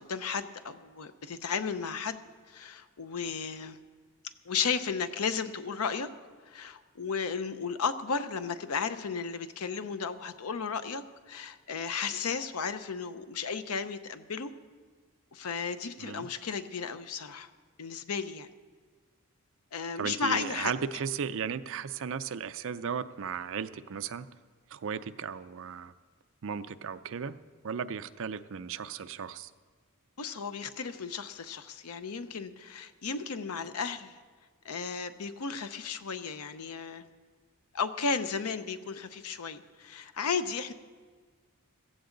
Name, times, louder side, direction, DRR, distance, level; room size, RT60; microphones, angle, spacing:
voice 1, 0.0-3.8 4.5-6.1 6.5-14.5 15.3-17.5 17.8-18.5 19.7-20.7 30.2-34.1 34.6-37.0 37.7-40.7, left 5 dB, 90° left, 11 dB, 0.7 m, -34 dB
voice 2, 20.0-24.3 24.7-25.9 26.4-27.3 27.6-29.5, right 6 dB, 60° right, 13 dB, 0.5 m, -35 dB
15.5 x 15.0 x 3.9 m, 1.5 s
head